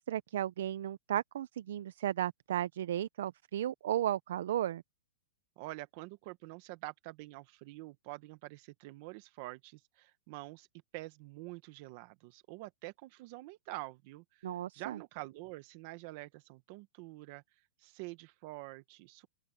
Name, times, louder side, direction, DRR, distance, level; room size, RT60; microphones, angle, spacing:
voice 1, 0.0-4.8 14.4-15.0, right 11 dB, 60° right, 0.5 m, -34 dB
voice 2, 5.6-10.7 10.9-19.3, right 20 dB, 35° right, 0.9 m, -47 dB
open air
hypercardioid pair, 170°, 0 cm